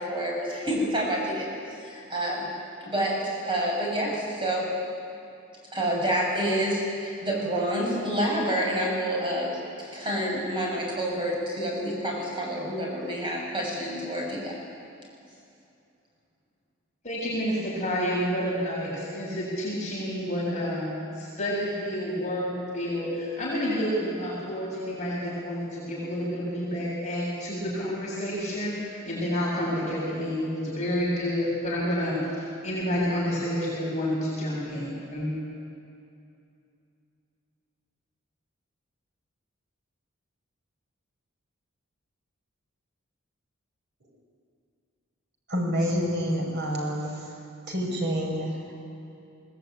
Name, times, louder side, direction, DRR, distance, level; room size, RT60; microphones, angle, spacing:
voice 1, 0.0-1.5 1.8-2.5 2.8-4.7 5.7-9.6 9.9-14.5, right 1 dB, 25° right, -2 dB, 6.9 m, -28 dB
voice 2, 17.0-32.4 32.6-35.3, equal, 35° left, -7 dB, 7.3 m, -29 dB
voice 3, 45.5-47.3 47.7-48.7, equal, 55° right, 0 dB, 5.7 m, -28 dB
22.5 x 19.0 x 9.3 m, 2.6 s
head